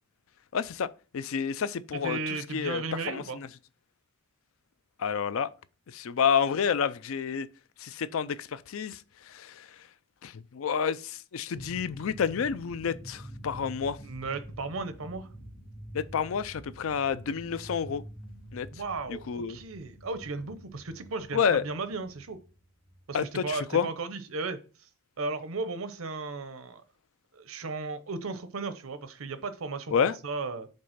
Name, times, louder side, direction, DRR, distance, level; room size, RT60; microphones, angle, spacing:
voice 1, 0.5-0.9 1.1-2.2 2.5-2.8 3.1-3.5 5.0-5.5 5.9-7.5 7.8-9.0 9.3-9.7 10.2-14.0 15.9-18.0 18.5-18.7 19.1-19.6 21.3-21.6 23.1-23.9 29.9-30.1, left 7 dB, 75° left, 0.4 m, -29 dB
voice 2, 1.9-3.4 14.0-15.3 18.7-22.4 23.1-24.6 25.2-26.8 27.3-29.9 30.2-30.7, right 3 dB, 80° right, 0.8 m, -35 dB
sound 1, 11.5-23.5, equal, 55° left, 1.6 m, -47 dB
5.3 x 3.9 x 5.6 m
head